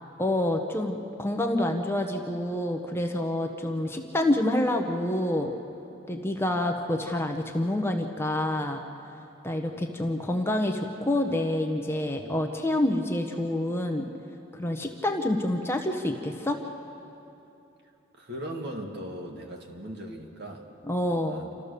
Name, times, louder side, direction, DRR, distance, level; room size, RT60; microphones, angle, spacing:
voice 1, 0.2-5.5 6.1-8.8 9.4-14.1 14.5-16.6 20.9-21.4, left 1 dB, 10° left, 4 dB, 0.8 m, -27 dB
voice 2, 18.1-20.7 21.0-21.5, equal, 55° right, 1 dB, 2.2 m, -38 dB
29.0 x 14.0 x 6.7 m, 2.9 s
head